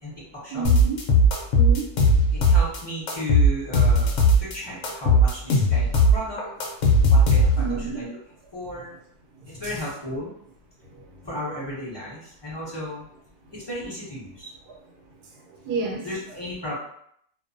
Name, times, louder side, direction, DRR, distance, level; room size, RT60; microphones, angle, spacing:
voice 1, 0.0-0.6 2.3-6.5 7.1-8.2 8.5-8.9 9.6-10.3 11.2-13.0 13.5-14.5 16.0-16.7, equal, 45° left, -8 dB, 0.3 m, -34 dB
voice 2, 0.5-1.0 1.5-1.8 7.6-8.0 9.5-9.8 14.7-14.8 15.5-16.1, right 5 dB, 85° right, -2 dB, 1.2 m, -30 dB
sound 1, 0.6-2.8 3.1-4.5 4.8-7.8, equal, 65° left, 0.8 m, -18 dB
2.6 x 2.2 x 2.5 m, 0.70 s
omnidirectional pair, 1.6 m